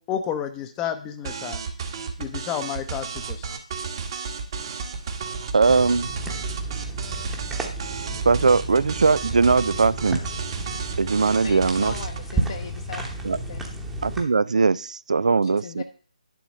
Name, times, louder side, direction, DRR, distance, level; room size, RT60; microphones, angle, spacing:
voice 1, 0.1-1.6 2.2-3.5, left 9 dB, 15° left, 8 dB, 0.7 m, -30 dB
sound 1, 1.2-12.2, right 5 dB, 35° right, 1.3 m, -33 dB
voice 2, 5.5-6.1 8.3-10.2 11.0-11.9 13.2-13.4 14.0-15.8, right 4 dB, 70° right, 20 dB, 0.4 m, -20 dB
sound 2, 5.7-14.2, right 2 dB, 5° right, 1.0 m, -32 dB
voice 3, 11.4-13.1 13.3-13.6 15.4-15.8, left 6 dB, 40° left, 5 dB, 0.8 m, -38 dB
10.5 x 4.0 x 6.4 m, 0.42 s
figure-of-eight pair, 160°, 4 cm